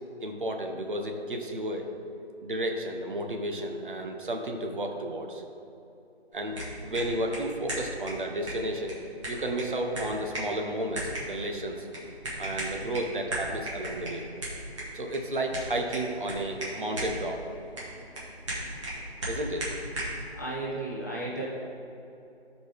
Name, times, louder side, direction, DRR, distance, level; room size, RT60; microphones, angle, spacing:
voice 1, 0.2-1.9 2.4-5.4 6.3-6.5 6.8-8.9 9.3-11.9 12.4-14.2 14.9-17.4 19.3-19.7, right 1 dB, 50° right, 3 dB, 1.0 m, -32 dB
sound 1, 6.3-20.2, right 1 dB, 30° right, 2.0 m, -38 dB
voice 2, 20.3-21.4, right 2 dB, 15° left, -6 dB, 0.7 m, -34 dB
12.5 x 5.1 x 3.5 m, 2.9 s
figure-of-eight pair, 155°, 33 cm